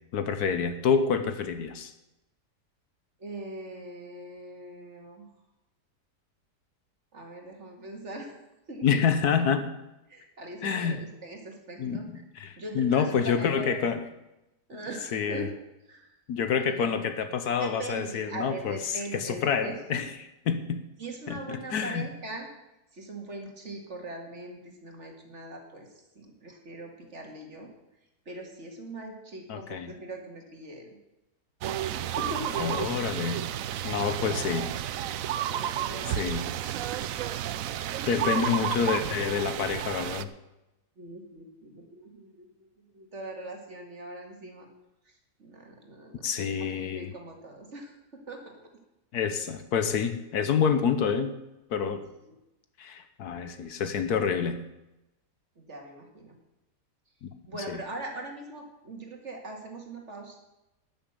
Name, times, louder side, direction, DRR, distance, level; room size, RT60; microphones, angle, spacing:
voice 1, 0.1-1.9 8.8-9.6 10.6-11.0 11.8-12.0 12.4-14.0 15.1-15.5 16.3-18.8 19.1-20.0 20.5-20.8 21.3-22.1 29.5-29.9 32.6-33.4 33.8-34.7 36.1-36.5 38.1-40.3 46.2-47.1 49.1-51.4 51.7-52.1 52.8-54.6 57.2-57.3 57.7-57.8, left 6 dB, 70° left, 9 dB, 1.4 m, -27 dB
voice 2, 3.2-5.3 7.1-8.3 8.7-9.0 9.5-9.6 10.1-12.1 12.6-13.8 14.7-15.5 15.9-16.2 16.7-17.0 17.6-20.1 21.0-22.5 22.9-27.7 28.3-31.0 31.9-32.7 34.3-34.7 35.4-36.3 41.0-44.7 45.0-46.3 46.6-48.0 48.3-48.4 52.2-52.3 55.6-56.3 57.5-60.4, right 2 dB, 45° right, 2 dB, 2.3 m, -41 dB
sound 1, 31.6-40.2, right 11 dB, 70° right, 0.9 m, -31 dB
12.0 x 6.8 x 8.0 m, 0.94 s
omnidirectional pair, 1.8 m